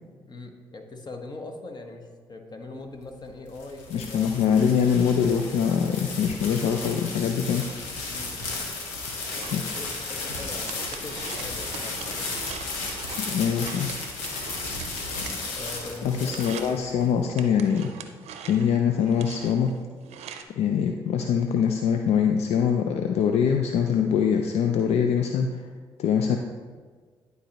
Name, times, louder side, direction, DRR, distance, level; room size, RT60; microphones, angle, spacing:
voice 1, 0.3-4.4 8.1-8.5 9.3-12.3 15.5-16.4, left 2 dB, 40° left, 4 dB, 1.2 m, -41 dB
sound 1, 3.2-17.1, left 3 dB, 85° left, 1.0 m, -34 dB
voice 2, 3.9-7.7 9.5-9.8 13.2-13.9 16.0-17.9 18.5-19.7 20.5-25.7 26.0-26.4, left 7 dB, 70° left, 5 dB, 0.4 m, -23 dB
sound 2, 8.9-16.0 16.2-16.8 17.4-20.4, right 7 dB, 70° right, 0.6 m, -43 dB
11.0 x 4.0 x 3.0 m, 1.5 s
hypercardioid pair, 50°, 11 cm